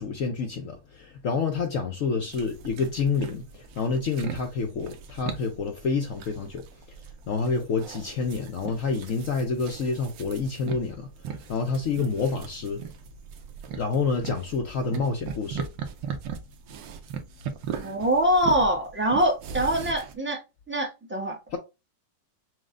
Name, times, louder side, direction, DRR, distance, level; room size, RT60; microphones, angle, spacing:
voice 1, 0.0-6.6 7.0-12.8 13.7-15.7 21.5-21.6, left 4 dB, 70° left, 0.7 m, -28 dB
sound 1, 2.3-20.1, right 7 dB, 80° right, 1.4 m, -39 dB
voice 2, 17.7-20.4 20.7-21.6, equal, 15° right, 0.4 m, -24 dB
6.3 x 2.2 x 3.6 m
omnidirectional pair, 2.0 m